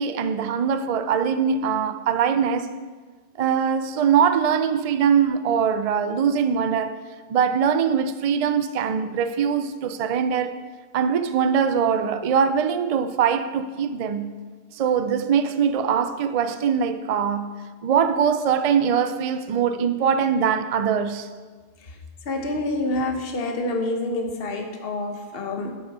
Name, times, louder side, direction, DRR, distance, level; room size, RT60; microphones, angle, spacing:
voice 1, 0.0-2.7 3.4-7.0 7.3-10.6 10.9-14.4 14.7-21.3, right 7 dB, 75° right, 0.3 m, -22 dB
voice 2, 22.3-25.7, left 2 dB, 50° left, 1.1 m, -27 dB
8.6 x 7.1 x 5.3 m
omnidirectional pair, 1.3 m